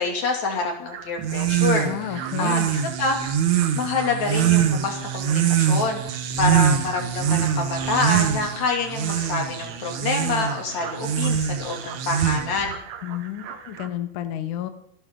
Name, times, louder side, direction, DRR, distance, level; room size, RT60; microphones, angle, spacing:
voice 1, 0.0-3.2 3.8-6.0 6.4-12.8, left 3 dB, 50° left, 2 dB, 3.6 m, -27 dB
sound 1, 0.9-13.9, right 8 dB, 85° right, 3.3 m, -41 dB
sound 2, 1.2-12.7, right 9 dB, 65° right, 2.3 m, -24 dB
voice 2, 1.8-2.7 13.0-14.7, left 11 dB, 70° left, 9 dB, 2.1 m, -31 dB
25.0 x 12.0 x 3.8 m, 0.72 s
omnidirectional pair, 4.3 m